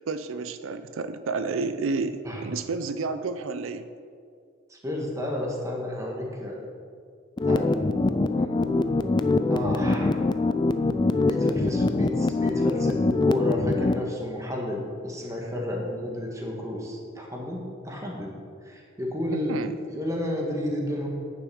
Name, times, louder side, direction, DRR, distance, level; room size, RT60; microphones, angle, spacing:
voice 1, 0.1-3.9 19.3-19.7, right 4 dB, 80° right, 12 dB, 0.5 m, -30 dB
voice 2, 4.7-6.6 7.4-7.7 9.5-10.2 11.2-18.3 18.6-19.5 19.9-21.1, left 1 dB, 15° right, -1 dB, 1.6 m, -31 dB
sound 1, 7.4-14.0, left 3 dB, 20° left, 0.3 m, -23 dB
9.5 x 6.8 x 6.3 m, 2.2 s
head